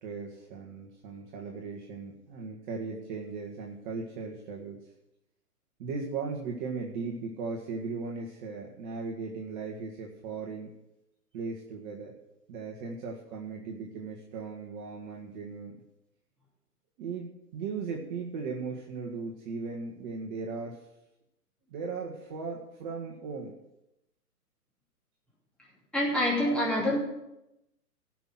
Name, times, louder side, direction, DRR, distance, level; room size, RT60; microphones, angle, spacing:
voice 1, 0.0-4.8 5.8-10.7 11.3-12.2 12.5-15.8 17.0-20.8 21.7-23.5, right 4 dB, 30° right, -1 dB, 1.7 m, -37 dB
voice 2, 25.9-27.0, left 1 dB, ahead, -5 dB, 2.8 m, -26 dB
17.0 x 6.1 x 7.9 m, 0.88 s
figure-of-eight pair, 125°, 47 cm